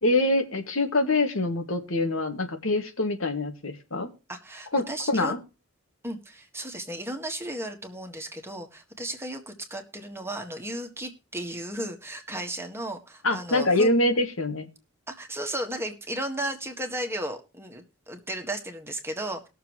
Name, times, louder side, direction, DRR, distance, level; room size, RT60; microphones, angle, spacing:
voice 1, 0.0-4.1 4.7-5.4 13.2-14.7, left 2 dB, 70° left, 5 dB, 2.0 m, -25 dB
voice 2, 4.3-5.3 6.0-13.9 15.1-19.5, right 1 dB, 10° right, 4 dB, 1.7 m, -35 dB
20.5 x 6.9 x 3.1 m, 0.30 s
head